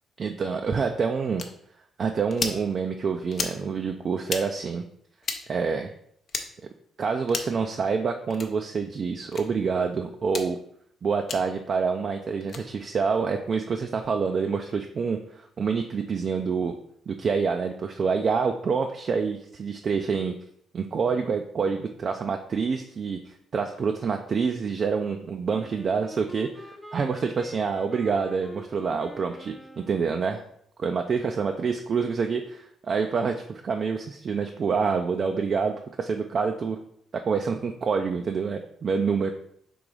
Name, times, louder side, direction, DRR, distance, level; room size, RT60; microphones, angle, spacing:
voice 1, 0.2-1.4 2.0-4.8 5.5-5.9 7.0-10.6 11.0-16.7 17.1-20.3 20.7-30.4 30.8-36.8 37.1-39.3, right 5 dB, 50° right, 4 dB, 0.4 m, -27 dB
sound 1, 1.4-1.5 2.3-2.6 3.3-3.6 4.2-4.4 5.2-5.4 6.3-6.5 7.3-7.6 8.3-8.5 9.3-9.4 10.3-10.5 11.3-11.4 12.4-12.6, left 4 dB, 55° left, 0.6 m, -32 dB
Wind instrument woodwind instrument, 25.5-30.2, equal, 5° left, 0.6 m, -44 dB
3.8 x 2.9 x 4.7 m, 0.69 s
cardioid pair, 90°, 0 cm